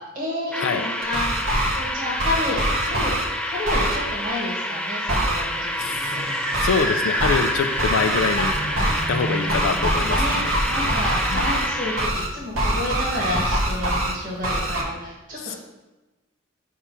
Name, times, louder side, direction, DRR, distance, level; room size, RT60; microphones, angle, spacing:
voice 1, 0.1-3.1 3.4-6.2 6.7-6.8 9.4-9.5 10.0-10.4 10.6-15.6, left 1 dB, 40° right, -7 dB, 1.6 m, -30 dB
sound 1, 0.5-12.1, equal, 5° left, 0.3 m, -29 dB
sound 2, 1.0-1.8 2.2-3.2 3.6-4.0 5.1-5.4 6.5-6.8 7.2-7.5 7.8-9.0 9.5-11.7 12.0-12.3 12.5-14.1 14.4-14.8, right 1 dB, 90° right, 1.2 m, -24 dB
sound 3, 5.4-12.8, equal, 60° right, 1.3 m, -31 dB
voice 2, 5.8-6.3 6.6-8.5 9.1-10.5 11.3-11.5 15.4-15.6, left 5 dB, 80° left, 8 dB, 0.4 m, -25 dB
5.6 x 3.7 x 5.9 m, 1.1 s
head